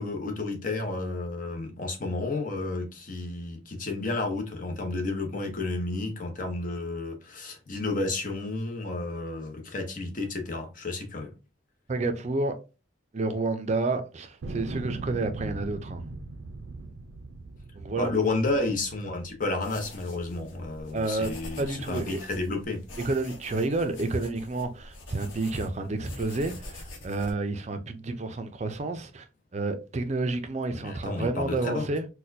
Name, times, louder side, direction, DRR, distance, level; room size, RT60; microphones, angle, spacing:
voice 1, 0.0-11.3 18.0-22.8 30.7-31.9, left 2 dB, 45° left, 0.8 m, -31 dB
voice 2, 11.9-12.5 13.1-16.0 17.8-18.1 20.9-21.3 21.6-22.2 23.0-29.2 29.5-32.1, right 2 dB, 35° right, 0.5 m, -30 dB
sound 1, 14.4-19.6 20.2-21.0, right 3 dB, 85° right, 0.5 m, -39 dB
sound 2, 19.6-27.3, left 2 dB, 80° left, 0.9 m, -45 dB
4.1 x 2.2 x 2.6 m
head